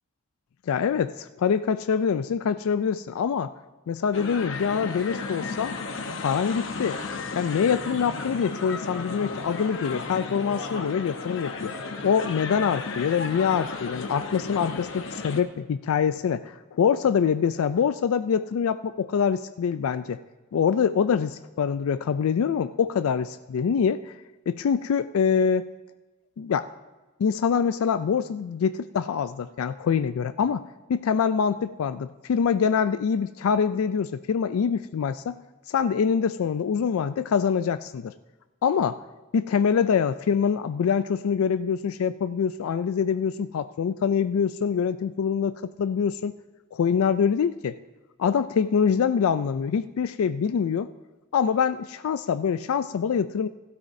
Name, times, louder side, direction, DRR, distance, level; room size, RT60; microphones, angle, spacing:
voice 1, 0.7-3.5 3.9-5.7 6.2-7.0 7.3-11.7 12.0-20.2 20.5-24.2 24.5-25.7 26.4-26.7 27.2-30.6 30.9-35.4 35.7-38.1 38.6-39.0 39.3-46.3 46.7-47.8 48.2-50.9 51.3-53.5, left 7 dB, 90° left, 12 dB, 0.4 m, -25 dB
sound 1, 4.1-15.4, left 4 dB, 65° left, 0.9 m, -34 dB
16.0 x 12.5 x 2.7 m, 1.1 s
head